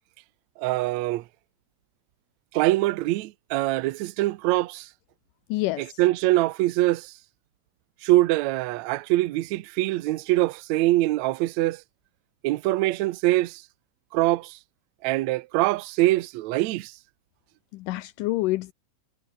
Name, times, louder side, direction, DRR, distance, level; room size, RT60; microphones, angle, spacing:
voice 1, 0.6-1.2 2.5-4.9 5.8-7.1 8.0-11.8 12.4-13.6 14.1-14.6 15.0-16.9, right 17 dB, 75° right, 1.8 m, -23 dB
voice 2, 5.5-5.9 17.7-18.7, left 18 dB, 80° left, 2.2 m, -27 dB
omnidirectional pair, 3.9 m